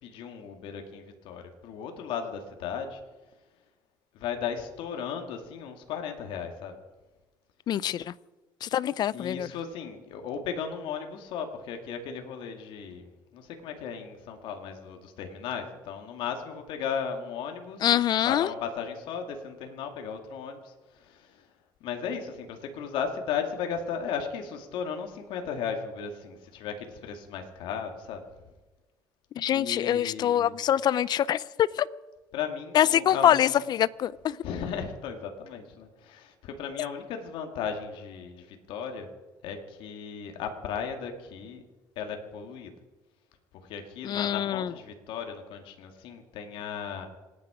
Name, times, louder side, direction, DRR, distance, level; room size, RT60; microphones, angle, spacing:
voice 1, 0.0-3.0 4.1-6.8 9.1-17.9 18.2-21.5 21.8-28.2 29.5-30.5 32.3-33.5 34.4-39.1 39.4-41.6 42.0-42.7 43.6-47.1, left 7 dB, 75° left, 2.2 m, -36 dB
voice 2, 7.7-8.1 8.6-9.5 17.8-18.5 29.4-31.9 32.7-34.4 44.0-44.7, left 11 dB, 55° left, 0.6 m, -24 dB
26.5 x 9.7 x 5.0 m
cardioid pair, 90°, 9 cm